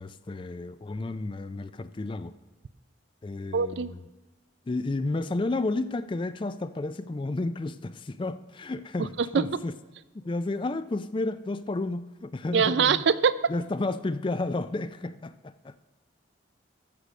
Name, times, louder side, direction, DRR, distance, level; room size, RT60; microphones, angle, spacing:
voice 1, 0.0-2.3 3.2-4.0 4.7-9.7 10.1-13.0 13.5-15.8, left 2 dB, 25° left, 0.3 m, -32 dB
voice 2, 3.5-3.9 9.0-9.1 9.3-9.5 12.5-13.5, right 6 dB, 60° right, 0.4 m, -23 dB
14.5 x 6.7 x 6.2 m
head